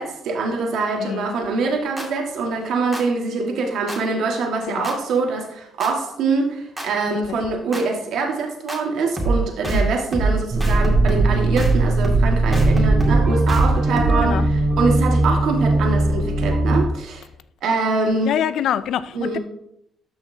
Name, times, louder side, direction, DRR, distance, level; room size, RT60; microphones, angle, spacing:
voice 1, 0.0-17.2 17.6-18.4 19.1-19.4, right 3 dB, 75° right, 1.7 m, -24 dB
voice 2, 1.0-1.3 4.7-4.9 7.0-7.5 9.7-10.0 14.2-14.5 18.2-19.4, left 10 dB, 75° left, 0.4 m, -26 dB
sound 1, 2.0-2.1 2.9-3.0 3.9-4.0 4.8-4.9 5.8-5.9 6.8-6.9 7.7-7.8 8.7-8.8 9.2-9.4 9.6-9.9 10.1-10.3 10.6-11.3 11.6-11.8 12.0-12.3 12.5-14.4, right 3 dB, 10° right, 2.3 m, -22 dB
sound 2, 10.5-16.8, right 2 dB, 35° right, 1.0 m, -19 dB
12.5 x 5.7 x 2.8 m
cardioid pair, 90°, 0 cm